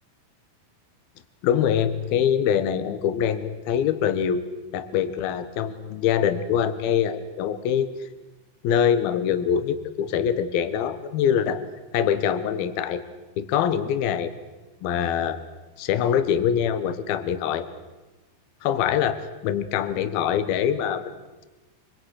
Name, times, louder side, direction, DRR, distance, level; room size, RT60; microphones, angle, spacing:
voice 1, 1.4-4.4 4.7-7.9 8.6-11.6 11.9-13.0 13.4-14.3 14.8-15.4 15.8-17.7 18.6-21.1, left 8 dB, 65° left, 12 dB, 2.6 m, -24 dB
26.0 x 25.0 x 6.5 m, 1.2 s
omnidirectional pair, 5.8 m